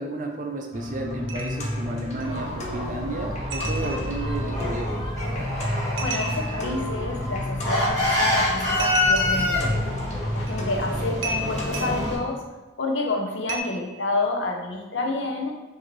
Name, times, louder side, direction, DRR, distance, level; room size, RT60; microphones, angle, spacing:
voice 1, 0.0-5.0 10.9-11.0, right 2 dB, 40° right, 2 dB, 0.5 m, -32 dB
sound 1, 0.7-11.6, left 1 dB, 35° left, 0.6 m, -31 dB
sound 2, 1.3-1.8 2.2-2.3 3.5-4.3 6.0-6.7 8.8-9.6 10.5-10.6 11.2-12.2 13.5-13.6, right 3 dB, 90° right, 0.6 m, -33 dB
sound 3, 2.2-12.2, left 1 dB, 15° left, 1.1 m, -28 dB
voice 2, 6.0-9.8 10.3-12.5 12.8-15.5, left 2 dB, 75° left, 2 dB, 0.6 m, -29 dB
5.0 x 2.7 x 3.1 m, 1.1 s
head